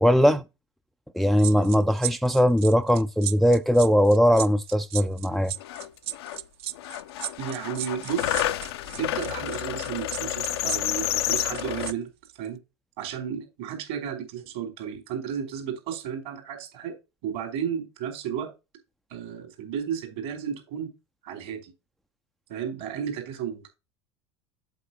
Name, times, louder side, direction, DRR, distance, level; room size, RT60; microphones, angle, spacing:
voice 1, 0.0-0.4 1.1-5.5, equal, ahead, 0.5 m, -20 dB
sound 1, 1.4-11.9 12.2-12.5, right 14 dB, 45° right, 0.6 m, -35 dB
sound 2, 5.3-5.4 5.6-6.4 6.8-11.9, left 13 dB, 65° left, 0.7 m, -30 dB
voice 2, 7.4-8.5 9.0-12.1 12.4-12.6 13.0-17.0 17.2-18.5 19.1-20.9 21.2-21.7 22.5-23.7, right 8 dB, 60° right, 4.4 m, -33 dB
8.3 x 7.4 x 2.8 m
figure-of-eight pair, 80°, 14 cm